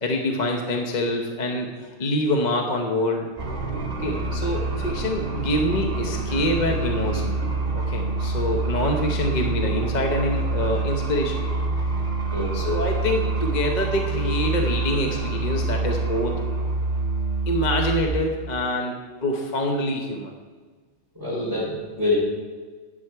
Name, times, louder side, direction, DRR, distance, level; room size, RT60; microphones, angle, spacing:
voice 1, 0.0-3.3 4.0-7.3 7.7-11.4 12.5-16.4 17.5-20.3, left 1 dB, 35° left, 1 dB, 1.0 m, -25 dB
sound 1, 3.4-18.1, right 3 dB, 40° right, 2.4 m, -26 dB
voice 2, 12.3-12.7 21.1-22.1, left 2 dB, 15° right, -9 dB, 3.5 m, -26 dB
11.0 x 8.1 x 4.6 m, 1.4 s
omnidirectional pair, 1.4 m